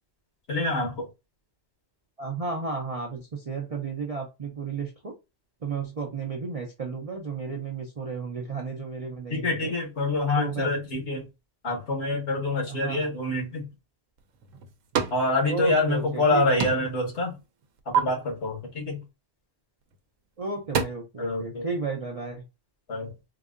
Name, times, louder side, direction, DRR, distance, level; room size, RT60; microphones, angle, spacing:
voice 1, 0.5-1.1 9.3-11.2 11.6-13.7 15.1-17.3 17.9-19.0 21.2-21.7 22.9-23.1, left 2 dB, 60° left, 1.5 m, -26 dB
voice 2, 2.2-5.2 5.6-9.7 10.4-10.7 12.7-13.1 15.4-16.8 20.4-22.4, right 4 dB, 45° right, 0.5 m, -33 dB
sound 1, 14.2-15.3 15.6-16.3 16.6-17.0 17.4-18.0 19.8-20.0 20.4-20.8, right 7 dB, 85° right, 1.0 m, -29 dB
3.9 x 2.7 x 2.5 m
omnidirectional pair, 1.3 m